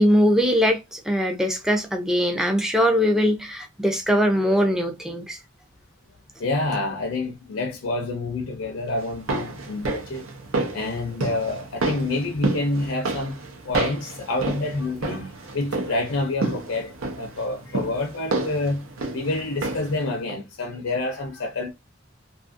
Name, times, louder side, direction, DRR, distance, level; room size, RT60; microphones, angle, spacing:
voice 1, 0.0-5.4, equal, 5° right, 0.4 m, -21 dB
voice 2, 6.4-10.3 10.7-18.8 19.1-21.7, left 2 dB, 75° left, 0.5 m, -28 dB
sound 1, 9.0-20.0 20.3-20.4, right 2 dB, 85° right, 0.7 m, -30 dB
2.7 x 2.4 x 2.4 m
head